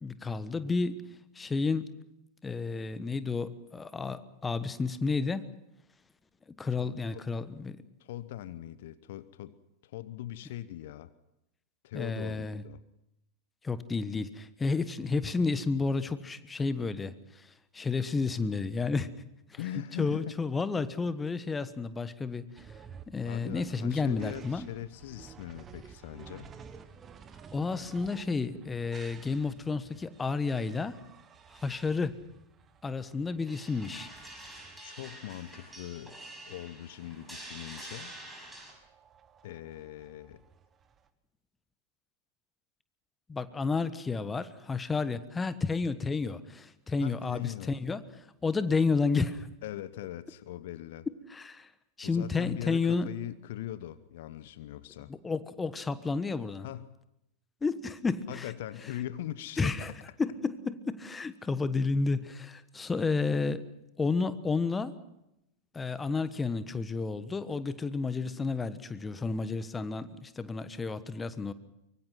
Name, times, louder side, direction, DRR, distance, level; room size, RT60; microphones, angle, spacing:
voice 1, 0.0-1.0 1.3-1.9 2.4-5.4 6.6-7.8 11.9-12.6 13.6-19.1 19.5-19.6 20.0-22.7 23.1-24.7 27.5-31.0 31.5-32.1 32.8-34.1 43.3-49.5 51.3-51.7 52.0-53.1 55.1-56.7 57.6-58.5 59.6-59.9 60.2-63.6 64.0-65.0 65.7-71.5, left 4 dB, 15° left, 14 dB, 1.3 m, -31 dB
voice 2, 6.8-7.2 8.0-9.6 9.8-11.1 11.8-12.8 19.6-20.3 23.2-26.5 34.8-36.2 36.5-38.1 39.4-40.4 47.0-47.7 49.6-51.1 52.0-55.1 56.6-56.9 58.3-60.0, left 13 dB, 55° left, 15 dB, 0.9 m, -41 dB
sound 1, 22.6-41.1, right 6 dB, 25° right, 1.5 m, -53 dB
sound 2, 33.5-38.7, right 1 dB, ahead, 7.0 m, -47 dB
24.5 x 23.5 x 6.0 m, 0.85 s
figure-of-eight pair, 90°, 0 cm